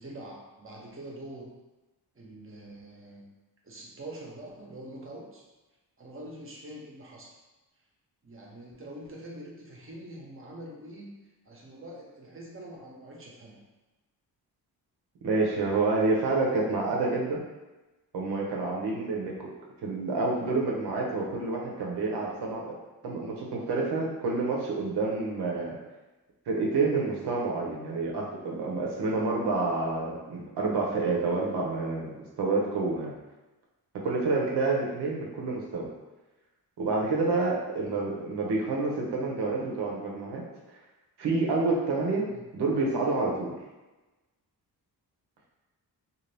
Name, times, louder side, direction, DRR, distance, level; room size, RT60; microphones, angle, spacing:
voice 1, 0.0-1.5 2.1-3.3 3.6-5.5 6.0-7.3 8.2-11.1 11.4-13.6 37.8-38.1 42.3-42.4, right 1 dB, 35° right, -2 dB, 0.8 m, -44 dB
voice 2, 15.2-17.4 18.1-19.5 19.8-22.8 23.0-25.8 26.5-33.1 33.9-35.9 36.8-40.4 41.2-42.2 42.5-43.5, right 3 dB, 90° right, -2 dB, 0.8 m, -28 dB
2.6 x 2.5 x 3.2 m, 1.1 s
cardioid pair, 100°, 39 cm